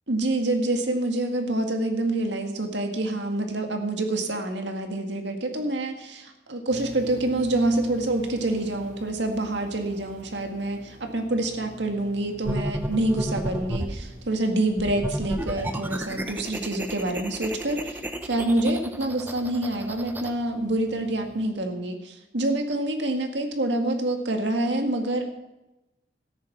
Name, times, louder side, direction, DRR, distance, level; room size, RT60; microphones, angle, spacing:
voice 1, 0.1-25.3, right 1 dB, 85° right, 4 dB, 2.0 m, -27 dB
sound 1, 6.7-21.5, right 1 dB, 45° right, 1.4 m, -49 dB
sound 2, 12.4-14.0 14.8-20.3, right 1 dB, 10° right, 0.8 m, -32 dB
13.5 x 10.5 x 6.0 m, 0.98 s
head